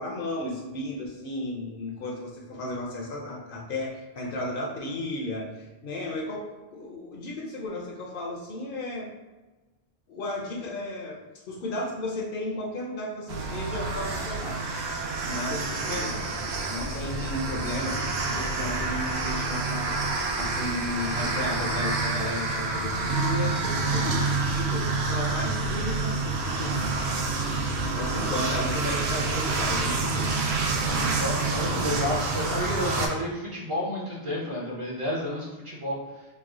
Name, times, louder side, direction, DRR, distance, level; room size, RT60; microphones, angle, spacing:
voice 1, 0.0-9.1 10.1-11.2 11.5-14.9 15.2-16.2 16.7-27.0 28.0-30.4 31.7-32.0, left 1 dB, 60° left, -2 dB, 0.7 m, -34 dB
sound 1, 13.3-33.1, right 3 dB, 80° right, 0.8 m, -28 dB
voice 2, 31.2-36.0, left 1 dB, 35° right, -6 dB, 0.6 m, -31 dB
3.2 x 2.1 x 3.6 m, 1.2 s
omnidirectional pair, 1.1 m